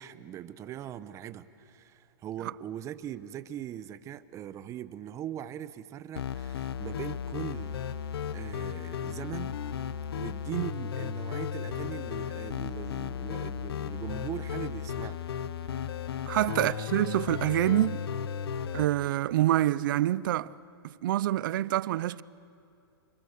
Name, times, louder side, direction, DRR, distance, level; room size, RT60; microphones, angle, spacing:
voice 1, 0.0-7.8 8.3-9.6 10.1-15.2 16.5-16.9, right 11 dB, 25° right, 0.9 m, -40 dB
sound 1, 6.2-18.9, left 8 dB, 75° left, 0.9 m, -35 dB
voice 2, 16.3-18.0 18.7-20.5 20.8-22.2, right 14 dB, 55° right, 0.6 m, -26 dB
29.5 x 26.5 x 6.8 m
hypercardioid pair, 140°, 13 cm